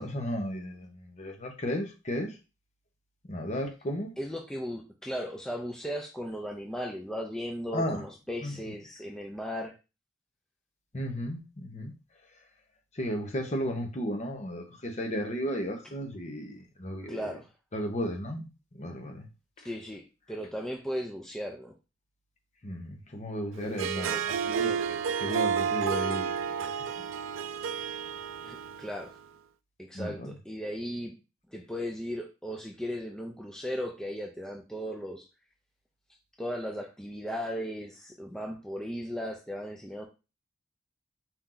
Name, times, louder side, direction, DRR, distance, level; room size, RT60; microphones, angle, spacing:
voice 1, 0.0-2.4 3.2-4.1 7.7-8.0 8.4-8.5 10.9-11.9 12.9-17.2 17.7-18.5 18.7-19.3 22.6-24.3 24.6-27.0 29.9-30.3, equal, 35° left, 0.9 m, -34 dB
voice 2, 4.2-9.8 17.1-17.5 19.6-21.7 23.6-24.8 28.4-29.1 29.8-31.1 31.5-35.2 36.4-40.1, equal, 5° left, 0.5 m, -37 dB
Harp, 23.6-29.1, right 7 dB, 90° right, 0.3 m, -31 dB
4.4 x 2.7 x 3.8 m
head